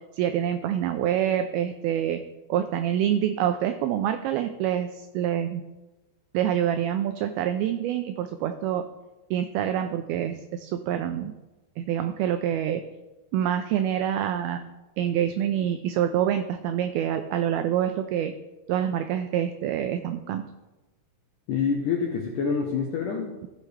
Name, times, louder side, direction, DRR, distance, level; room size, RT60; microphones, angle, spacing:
voice 1, 0.1-2.2 2.5-5.6 6.3-8.9 9.3-11.3 11.8-12.8 13.3-14.7 15.0-18.3 18.7-20.4, right 10 dB, 85° right, 8 dB, 2.1 m, -26 dB
voice 2, 21.5-23.5, left 6 dB, 80° left, 1 dB, 1.8 m, -27 dB
15.5 x 6.5 x 3.2 m, 1.1 s
omnidirectional pair, 4.8 m